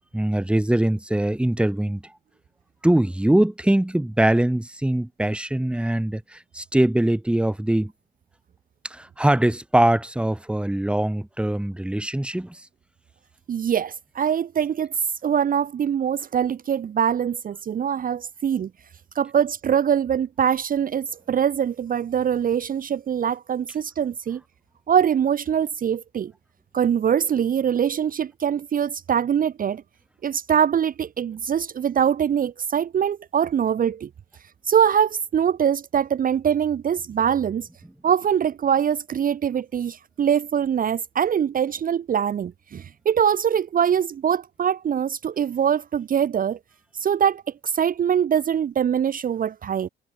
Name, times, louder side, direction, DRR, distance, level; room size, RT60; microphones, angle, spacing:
voice 1, 0.1-2.0 2.8-7.9 8.8-12.6, right 1 dB, 5° right, 1.4 m, -22 dB
voice 2, 13.5-14.9 15.2-18.7 19.2-24.4 24.9-26.3 26.7-29.8 30.2-34.1 34.7-37.7 38.0-46.6 46.9-49.9, right 8 dB, 45° right, 0.7 m, -23 dB
cardioid pair, 90°, 20 cm